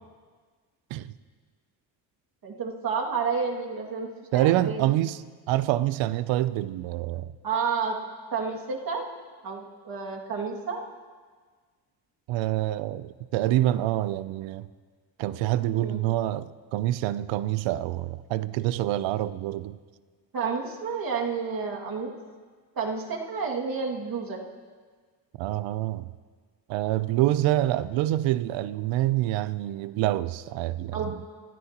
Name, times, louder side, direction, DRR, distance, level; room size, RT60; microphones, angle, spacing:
voice 1, 2.4-4.1 4.3-4.9 7.4-8.0 8.3-9.1 9.4-10.8 15.7-16.0 20.3-22.1 22.8-24.4 30.9-31.2, right 5 dB, 50° right, 2.4 m, -30 dB
voice 2, 4.3-7.3 12.3-14.7 15.2-19.8 25.4-26.1 26.7-31.0, right 14 dB, 85° right, 0.6 m, -26 dB
26.0 x 12.5 x 3.0 m
cardioid pair, 90°, 44 cm